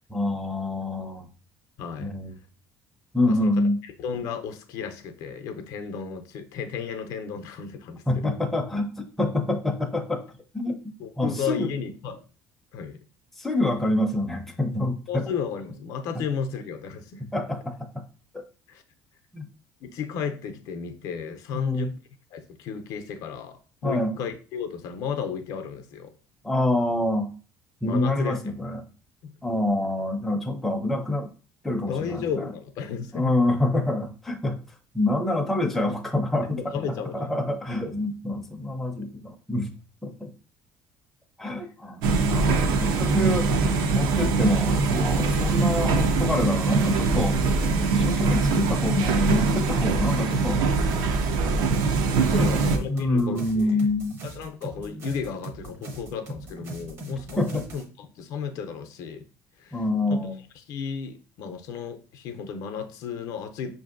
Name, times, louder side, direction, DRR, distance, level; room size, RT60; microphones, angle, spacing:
voice 1, 0.1-1.3 2.0-2.3 3.1-3.8 8.1-8.9 9.2-10.3 10.5-10.8 11.2-11.7 13.4-15.0 17.3-17.7 19.3-19.4 21.5-21.9 23.8-24.1 26.4-27.3 27.8-28.8 29.4-31.3 31.6-32.2 33.1-34.6 34.9-36.6 37.1-39.7 40.0-40.3 41.4-43.5 43.9-47.4 47.9-50.6 52.4-54.2 57.4-57.6 59.7-60.4, left 1 dB, 5° left, 0.4 m, -26 dB
voice 2, 1.8-2.1 3.3-8.4 11.0-12.2 12.7-13.0 15.1-17.2 18.7-18.8 19.8-21.9 22.3-26.1 27.8-28.4 29.2-29.3 31.8-33.4 36.4-37.3 41.6-41.7 52.1-53.8 54.2-59.2 59.6-59.8 60.1-63.7, left 6 dB, 65° left, 0.5 m, -34 dB
sound 1, 42.0-52.8, right 4 dB, 80° right, 0.5 m, -23 dB
sound 2, 44.8-57.8, right 2 dB, 40° right, 0.6 m, -40 dB
5.3 x 2.6 x 2.5 m
cardioid pair, 160°, 7 cm